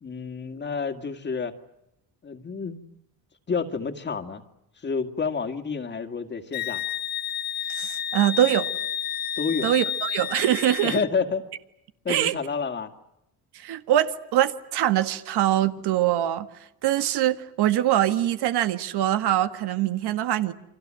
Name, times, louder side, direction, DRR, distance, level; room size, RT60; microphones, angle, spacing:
voice 1, 0.0-1.5 2.2-2.8 3.5-4.4 4.8-6.8 9.4-9.7 10.8-11.4 12.0-12.9, left 5 dB, 30° left, 2.2 m, -29 dB
Wind instrument woodwind instrument, 6.5-11.1, left 9 dB, 65° left, 1.5 m, -31 dB
voice 2, 7.7-8.7 9.6-11.0 12.1-12.3 13.5-16.5 16.8-20.5, right 12 dB, 85° right, 1.9 m, -23 dB
29.5 x 25.5 x 7.7 m
cardioid pair, 150°, 38 cm